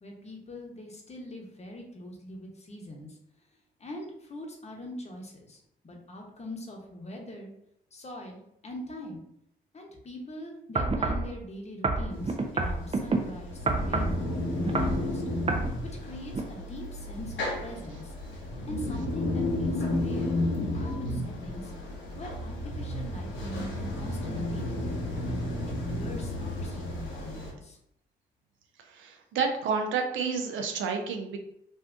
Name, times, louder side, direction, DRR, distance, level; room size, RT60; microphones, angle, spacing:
voice 1, 0.0-3.2 3.8-7.5 7.9-9.2 9.7-15.2 16.0-18.1 18.7-21.7 22.1-25.2 25.7-27.8, equal, 35° left, 1 dB, 1.0 m, -42 dB
sound 1, 10.8-11.3 11.8-13.2 13.7-14.2 14.6-15.0 15.5-15.7 16.3-16.4, right 3 dB, 30° right, 0.6 m, -27 dB
sound 2, 12.1-27.5, left 1 dB, 70° left, 0.8 m, -33 dB
voice 2, 28.9-31.4, right 5 dB, 70° right, 4 dB, 0.6 m, -30 dB
2.7 x 2.4 x 3.4 m, 0.76 s
supercardioid pair, 50°, 20 cm